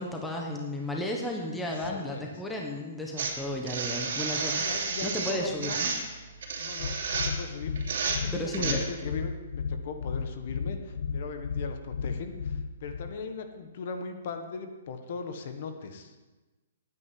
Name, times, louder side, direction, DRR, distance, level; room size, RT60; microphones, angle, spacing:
voice 1, 0.0-5.9 8.3-8.8, left 1 dB, 5° left, 0 dB, 1.0 m, -34 dB
voice 2, 1.6-2.3 4.6-5.8 6.6-16.2, left 5 dB, 40° left, 7 dB, 1.3 m, -39 dB
sound 1, 3.2-8.7, right 5 dB, 55° right, 3.0 m, -31 dB
sound 2, 6.8-13.1, left 5 dB, 65° left, 0.8 m, -34 dB
9.7 x 8.6 x 9.5 m, 1.2 s
hypercardioid pair, 175°, 0 cm